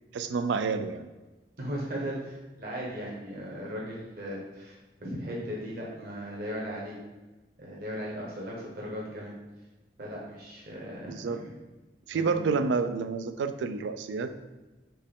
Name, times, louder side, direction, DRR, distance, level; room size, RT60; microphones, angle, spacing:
voice 1, 0.1-1.1 11.1-11.4 12.1-14.3, right 4 dB, 85° right, 10 dB, 0.3 m, -29 dB
voice 2, 1.6-7.0 7.6-9.3 10.0-11.5 12.1-12.4, equal, 55° right, -4 dB, 1.0 m, -37 dB
4.4 x 3.1 x 3.6 m, 1.1 s
head